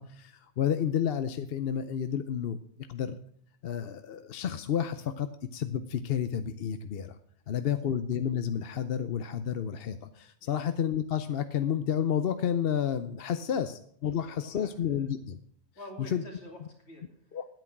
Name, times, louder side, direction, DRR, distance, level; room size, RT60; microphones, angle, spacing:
voice 1, 0.0-2.6 2.9-3.2 3.6-5.3 5.5-7.2 7.5-15.4 16.1-16.2 17.3-17.4, left 8 dB, 65° left, 10 dB, 0.9 m, -30 dB
voice 2, 14.1-15.1 15.7-17.4, left 1 dB, 85° left, 2 dB, 2.9 m, -49 dB
10.0 x 9.1 x 5.9 m, 0.64 s
omnidirectional pair, 1.1 m